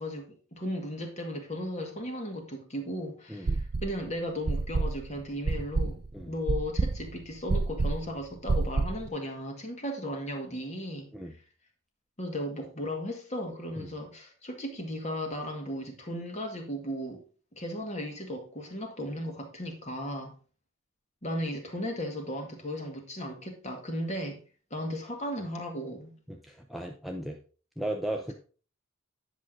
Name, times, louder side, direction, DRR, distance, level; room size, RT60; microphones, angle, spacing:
voice 1, 0.0-11.1 12.2-17.2 17.6-20.3 21.2-24.4 24.7-26.1, equal, 35° left, 2.0 m, -36 dB
voice 2, 3.3-3.6 6.1-6.3 11.1-11.3 13.8-13.9 26.3-27.4 27.8-28.3, right 1 dB, ahead, 0.6 m, -36 dB
sound 1, 3.5-4.0 4.5-9.1, right 3 dB, 50° right, 0.5 m, -28 dB
10.0 x 6.2 x 3.8 m
head